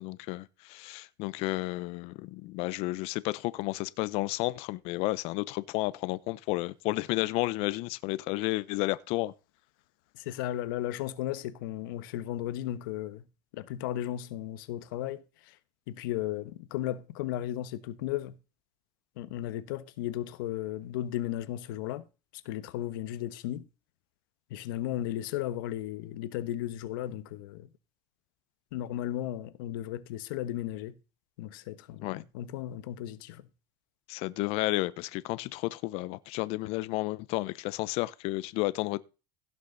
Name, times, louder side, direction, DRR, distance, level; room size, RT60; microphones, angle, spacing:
voice 1, 0.0-9.3 32.0-32.2 34.1-39.0, left 20 dB, 65° left, 0.8 m, -32 dB
voice 2, 10.1-13.3 13.5-15.6 15.9-18.4 19.2-22.0 22.3-23.7 24.5-27.7 28.7-31.0 31.4-33.5, left 13 dB, 85° left, 1.2 m, -35 dB
16.5 x 6.2 x 4.0 m
supercardioid pair, 120°, 11 cm